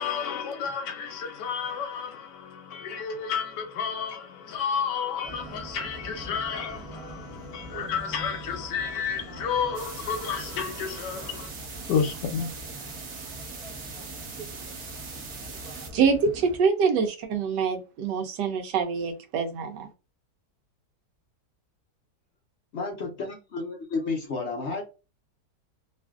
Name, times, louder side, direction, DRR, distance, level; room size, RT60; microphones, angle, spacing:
voice 1, 0.0-11.5 11.9-12.5, left 7 dB, 85° left, 1.3 m, -31 dB
sound 1, 5.2-16.6, right 2 dB, 5° right, 0.3 m, -43 dB
sound 2, 9.7-15.9, right 4 dB, 55° right, 0.8 m, -41 dB
voice 2, 15.9-19.9, right 5 dB, 85° right, 1.3 m, -25 dB
voice 3, 22.7-23.3 23.5-24.8, left 3 dB, 55° left, 0.7 m, -31 dB
3.1 x 2.5 x 2.3 m
omnidirectional pair, 1.8 m